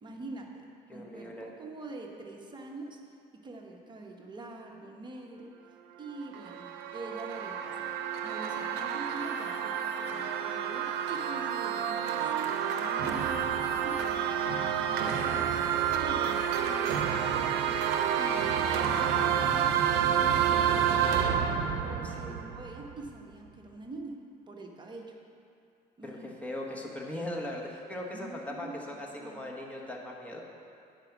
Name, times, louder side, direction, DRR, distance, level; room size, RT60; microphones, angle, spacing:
voice 1, 0.0-3.0 3.4-5.5 6.0-6.7 6.9-7.9 8.2-21.3 21.8-24.2 24.5-25.2 26.0-26.3 28.1-29.4, right 2 dB, 25° right, 1 dB, 1.0 m, -45 dB
voice 2, 0.9-1.5 22.0-22.4 26.0-30.4, left 1 dB, 10° left, -2 dB, 1.3 m, -39 dB
sound 1, 6.1-23.1, right 8 dB, 85° right, 0.6 m, -29 dB
9.5 x 5.2 x 5.9 m, 2.5 s
cardioid pair, 110°, 17 cm